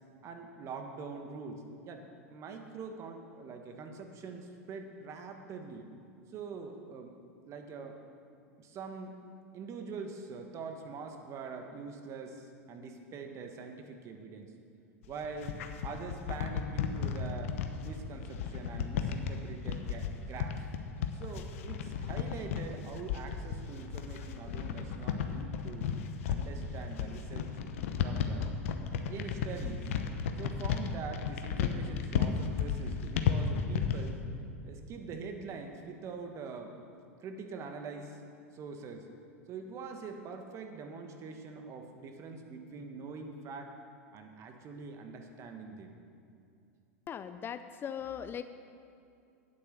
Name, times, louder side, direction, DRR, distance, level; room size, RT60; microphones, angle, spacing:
voice 1, 0.2-2.1 2.3-5.9 6.3-7.2 7.5-8.0 8.6-9.2 9.5-14.5 15.1-20.7 21.1-25.9 26.3-27.5 28.0-28.6 29.1-29.9 30.4-34.2 34.6-36.8 37.2-38.2 38.5-39.1 39.5-43.7 44.1-46.0, right 4 dB, 40° right, 4 dB, 1.4 m, -44 dB
sound 1, 15.0-34.1, left 7 dB, 70° left, 0.9 m, -34 dB
voice 2, 47.1-48.4, left 8 dB, 30° left, 11 dB, 0.4 m, -39 dB
9.5 x 8.3 x 6.7 m, 2.5 s
hypercardioid pair, 95°, 8 cm